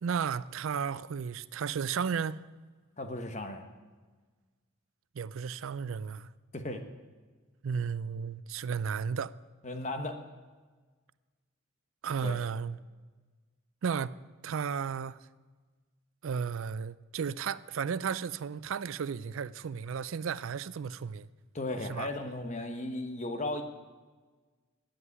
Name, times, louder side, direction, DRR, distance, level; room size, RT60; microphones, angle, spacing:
voice 1, 0.0-2.4 5.1-6.3 7.6-9.3 12.0-12.8 13.8-14.2 14.4-15.2 16.2-21.3 21.9-22.1, right 6 dB, 65° right, 0.4 m, -34 dB
voice 2, 3.0-3.7 6.5-6.8 9.6-10.2 12.2-12.4 21.5-23.6, left 2 dB, 35° left, 1.1 m, -35 dB
11.0 x 7.7 x 9.5 m
head